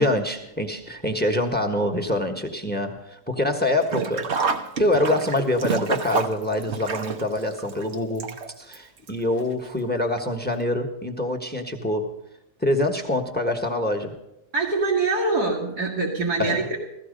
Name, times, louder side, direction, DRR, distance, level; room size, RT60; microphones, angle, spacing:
voice 1, 0.0-4.3 4.8-12.1 12.6-14.1 16.4-16.6, left 1 dB, 5° left, 6 dB, 1.2 m, -25 dB
Sink (filling or washing), 3.8-8.8 9.1-9.2 10.2-10.3 10.6-10.7, right 5 dB, 50° right, 1.1 m, -28 dB
voice 2, 14.5-16.8, right 3 dB, 80° right, -1 dB, 2.5 m, -24 dB
16.0 x 14.5 x 5.2 m, 0.89 s
omnidirectional pair, 1.7 m